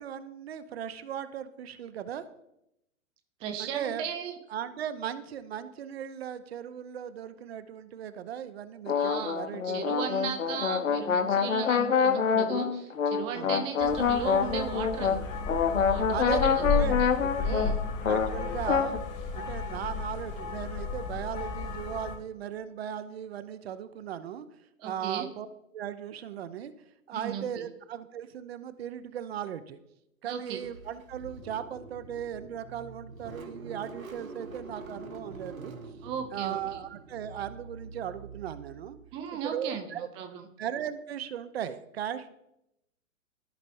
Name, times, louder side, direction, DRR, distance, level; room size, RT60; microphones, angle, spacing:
voice 1, 0.0-2.2 3.6-4.0 4.5-10.0 13.3-13.6 16.1-17.7 18.0-19.0 19.3-24.5 24.8-25.5 25.7-26.7 27.1-29.8 30.2-35.8 36.3-39.0 39.3-40.1 40.6-42.3, right 9 dB, 50° right, 12 dB, 0.7 m, -37 dB
voice 2, 3.4-4.3 8.9-9.4 9.6-15.2 15.8-17.1 17.4-17.8 24.8-25.3 27.1-27.7 30.2-30.6 36.0-36.8 39.1-40.4, right 8 dB, 15° right, 5 dB, 0.5 m, -36 dB
sound 1, 8.9-19.0, left 6 dB, 75° left, 0.8 m, -26 dB
sound 2, 13.8-22.2, left 4 dB, 30° left, 1.5 m, -33 dB
Car / Engine starting, 30.5-39.2, right 3 dB, 85° right, 1.2 m, -46 dB
14.5 x 5.2 x 2.6 m, 0.83 s
figure-of-eight pair, 110°, 40 cm